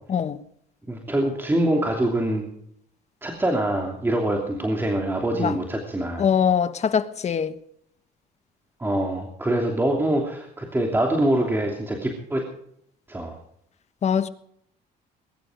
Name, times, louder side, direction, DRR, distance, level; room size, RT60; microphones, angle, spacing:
voice 1, 0.9-2.5 3.2-6.3 8.8-12.4 13.1-13.4, right 1 dB, 10° right, 2.9 m, -24 dB
voice 2, 6.2-7.5 14.0-14.3, left 7 dB, 40° left, 1.3 m, -22 dB
21.5 x 11.0 x 5.2 m
cardioid pair, 110°, 17 cm